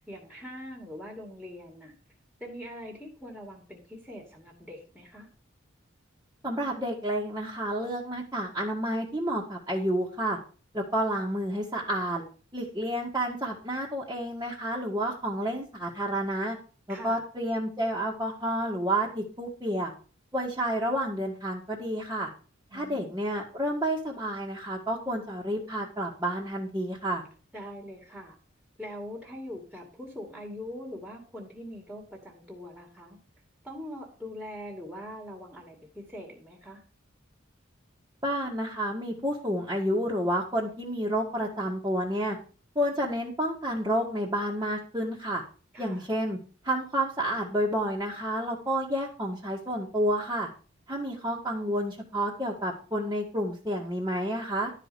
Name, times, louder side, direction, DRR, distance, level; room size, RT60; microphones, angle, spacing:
voice 1, 0.0-1.9 2.4-5.3 16.9-17.3 22.7-23.1 27.5-28.4 28.8-33.2 33.6-36.8 45.7-46.1, equal, ahead, 0 dB, 2.3 m, -42 dB
voice 2, 6.4-10.4 10.7-12.2 12.5-16.6 16.9-19.9 20.3-22.3 22.7-27.2 38.2-42.4 42.8-45.4 45.8-46.4 46.6-50.5 50.9-54.7, right 1 dB, 15° right, -4 dB, 1.9 m, -30 dB
12.0 x 5.0 x 6.9 m, 0.37 s
head